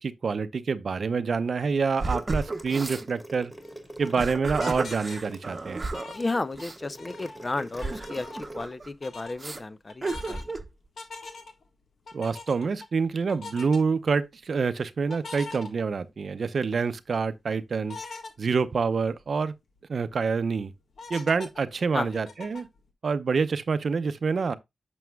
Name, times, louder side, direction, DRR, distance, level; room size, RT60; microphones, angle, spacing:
voice 1, 0.0-3.5 4.0-5.9 12.1-18.0 18.4-19.5 19.9-20.7 21.1-22.7 23.0-24.6, right 5 dB, 60° right, 0.6 m, -27 dB
sound 1, 2.0-8.6, right 1 dB, 5° right, 1.9 m, -44 dB
sound 2, 2.0-3.1 4.0-6.1 6.6-6.8 7.7-8.9 9.4-9.6 10.0-10.7, right 3 dB, 35° right, 0.9 m, -33 dB
sound 3, 3.6-6.7 7.0-8.7 9.0-9.3 9.9-10.5 11.0-11.6 12.1-12.9 13.3-13.8 15.1-16.3 16.8-16.9 17.9-18.3 18.8-18.9 19.2-19.3 19.8-20.1 21.0-22.8, left 3 dB, 75° left, 1.6 m, -43 dB
voice 2, 6.1-10.5 21.9-22.1, left 2 dB, 30° left, 0.5 m, -33 dB
9.3 x 6.2 x 2.2 m
cardioid pair, 70°, 0 cm